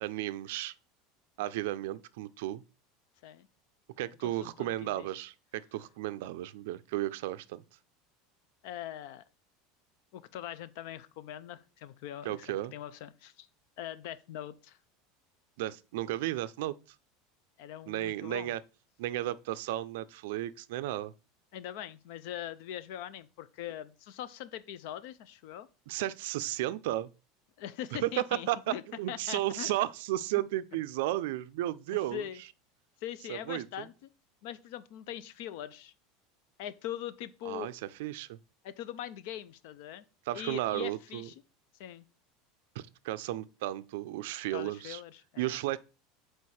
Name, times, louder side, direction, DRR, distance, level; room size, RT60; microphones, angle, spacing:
voice 1, 0.0-0.7 1.4-2.6 4.0-7.6 12.2-12.7 15.6-16.7 17.9-18.6 19.0-21.1 25.9-27.1 27.9-32.2 33.3-33.9 37.5-38.4 40.3-41.3 42.8-45.0 45.4-45.8, right 15 dB, 70° right, 0.4 m, -34 dB
voice 2, 4.2-5.1 8.6-9.2 10.1-13.5 13.8-14.8 17.6-18.5 21.5-25.7 27.6-28.8 29.1-29.7 31.9-32.4 33.0-34.1 34.4-35.9 36.6-37.7 38.6-40.0 40.3-41.3 41.8-42.0 44.5-45.6, left 11 dB, 60° left, 0.5 m, -42 dB
6.4 x 4.6 x 4.2 m
supercardioid pair, 165°, 0 cm